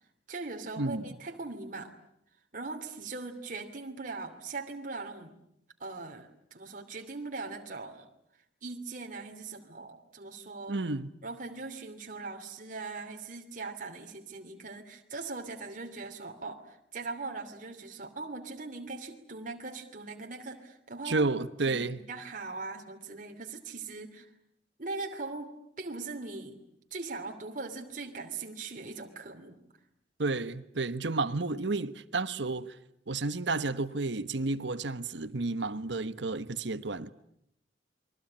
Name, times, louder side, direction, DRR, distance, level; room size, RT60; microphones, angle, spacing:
voice 1, 0.3-1.9 2.5-5.4 5.8-8.0 8.6-10.8 11.2-21.3 21.7-24.3 24.8-26.6 26.9-29.6, right 3 dB, 45° right, 2.9 m, -40 dB
voice 2, 10.7-11.1 21.0-22.0 30.2-32.8 33.1-37.1, right 3 dB, 75° right, 1.2 m, -31 dB
29.0 x 23.0 x 8.8 m
head